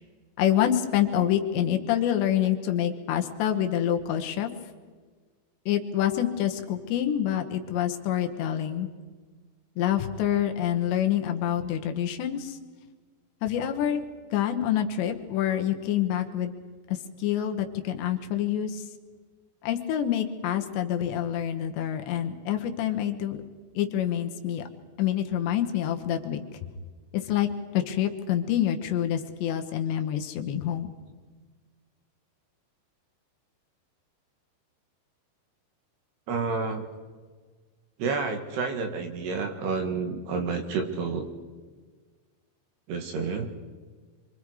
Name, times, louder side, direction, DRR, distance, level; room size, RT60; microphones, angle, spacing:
voice 1, 0.4-4.5 5.7-8.9 9.8-12.6 13.4-14.0 14.3-16.5 16.9-18.9 19.6-23.4 23.7-24.6 25.0-26.4 27.1-30.9, left 10 dB, 75° left, 5 dB, 3.2 m, -27 dB
voice 2, 36.3-36.8 38.0-41.3 42.9-43.5, right 4 dB, 65° right, 5 dB, 3.4 m, -29 dB
26.5 x 24.5 x 4.9 m, 1.5 s
omnidirectional pair, 5.4 m